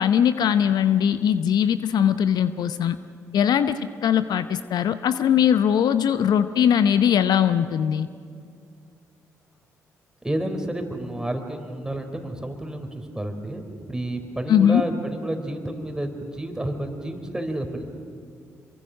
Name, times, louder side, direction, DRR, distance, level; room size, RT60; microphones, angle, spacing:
voice 1, 0.0-3.0 3.3-8.1 14.5-14.9, left 9 dB, 60° left, 12 dB, 0.7 m, -20 dB
voice 2, 10.2-17.9, right 1 dB, 10° right, 6 dB, 3.9 m, -30 dB
26.5 x 23.0 x 6.4 m, 2.3 s
hypercardioid pair, 45°, 8 cm